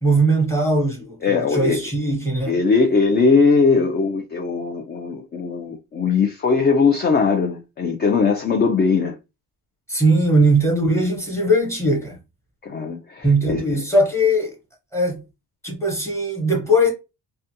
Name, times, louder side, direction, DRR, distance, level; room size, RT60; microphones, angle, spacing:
voice 1, 0.0-2.5 9.9-12.2 13.2-14.6 14.9-15.2 15.6-16.9, right 1 dB, 5° left, 1.0 m, -19 dB
voice 2, 1.2-1.8 2.5-9.2 12.6-13.7, left 4 dB, 25° left, 0.4 m, -20 dB
2.3 x 2.2 x 2.7 m
cardioid pair, 130°, 40 cm